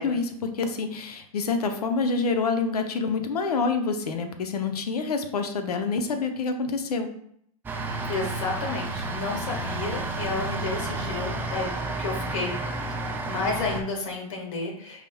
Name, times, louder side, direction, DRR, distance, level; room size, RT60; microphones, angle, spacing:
voice 1, 0.0-7.1, left 4 dB, 90° left, 6 dB, 0.7 m, -27 dB
sound 1, 7.7-13.8, right 2 dB, 10° right, 0.4 m, -31 dB
voice 2, 8.0-11.7 12.0-12.5 13.0-15.1, left 3 dB, 60° left, 1 dB, 1.5 m, -31 dB
4.8 x 3.5 x 2.2 m, 0.68 s
hypercardioid pair, 125°, 19 cm